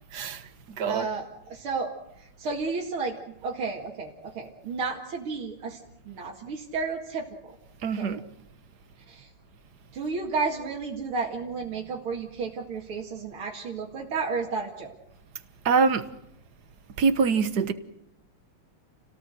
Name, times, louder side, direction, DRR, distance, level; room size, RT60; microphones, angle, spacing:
voice 1, 0.1-0.4 0.7-1.1 7.8-8.2 15.6-16.1 17.0-17.7, right 5 dB, 55° right, 1.6 m, -24 dB
voice 2, 0.8-5.8 6.1-7.5 8.0-8.2 9.1-9.3 9.9-14.9, right 4 dB, 70° right, 3.0 m, -32 dB
29.5 x 18.0 x 7.8 m
omnidirectional pair, 2.4 m